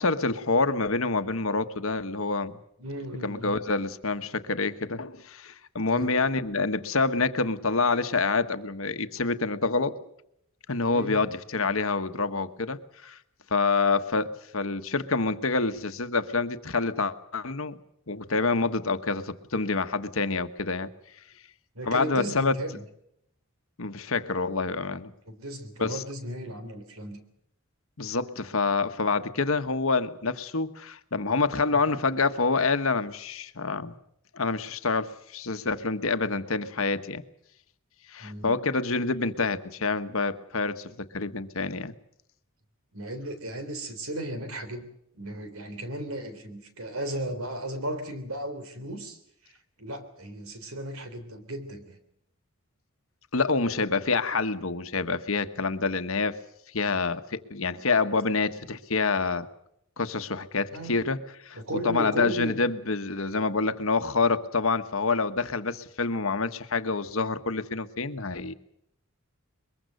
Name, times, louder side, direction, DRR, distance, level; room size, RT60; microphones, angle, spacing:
voice 1, 0.0-2.5 3.2-10.0 10.7-13.2 13.5-17.7 18.1-20.9 21.8-22.5 23.8-25.1 25.8-26.0 28.0-34.0 34.3-37.2 38.1-41.9 53.3-56.4 56.7-59.5 60.0-61.2 61.5-61.6 61.8-68.5, left 4 dB, 65° left, 10 dB, 1.3 m, -27 dB
voice 2, 2.8-3.6 5.9-6.1 10.9-11.2 21.8-22.8 25.3-27.2 38.2-38.6 42.9-44.9 45.1-49.2 49.4-52.0 60.7-61.0 61.5-62.6, right 1 dB, 75° right, 9 dB, 3.5 m, -35 dB
22.5 x 22.0 x 6.7 m, 0.75 s
head